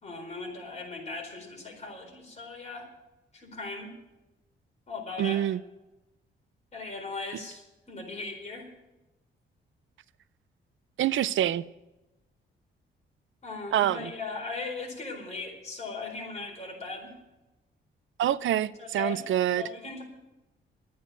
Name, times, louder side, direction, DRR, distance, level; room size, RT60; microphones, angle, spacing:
voice 1, 0.0-2.9 3.3-3.9 4.9-5.4 6.7-8.7 13.4-17.1 18.8-19.2 19.6-20.0, left 3 dB, 35° left, 4.3 m, -38 dB
voice 2, 5.2-5.6 11.0-11.6 13.7-14.1 18.2-19.6, right 11 dB, 75° right, 0.5 m, -26 dB
12.5 x 9.4 x 9.1 m
wide cardioid pair, 140°, 20 cm